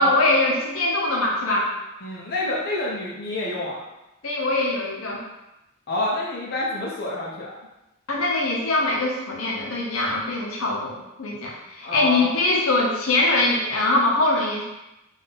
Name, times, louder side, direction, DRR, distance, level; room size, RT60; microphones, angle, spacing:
voice 1, 0.0-1.7 4.2-5.2 8.1-14.6, left 2 dB, 80° left, -2 dB, 0.8 m, -22 dB
voice 2, 2.0-3.8 5.9-7.5 11.8-12.3, left 1 dB, 50° left, -5 dB, 0.7 m, -28 dB
3.7 x 2.6 x 3.9 m, 0.94 s
head